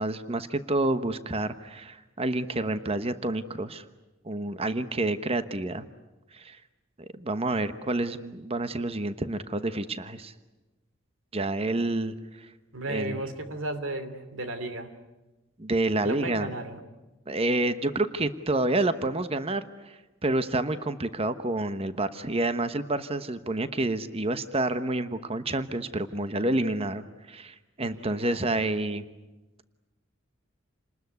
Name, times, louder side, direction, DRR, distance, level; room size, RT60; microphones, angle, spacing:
voice 1, 0.0-3.8 4.2-5.9 6.3-6.6 7.1-10.3 11.3-12.5 12.9-13.2 15.6-16.5 17.3-29.0, right 2 dB, 30° right, 11 dB, 1.1 m, -29 dB
voice 2, 12.7-14.9 16.0-16.8 27.8-28.5, right 2 dB, 90° right, 10 dB, 2.9 m, -34 dB
28.5 x 20.5 x 9.5 m, 1.1 s
head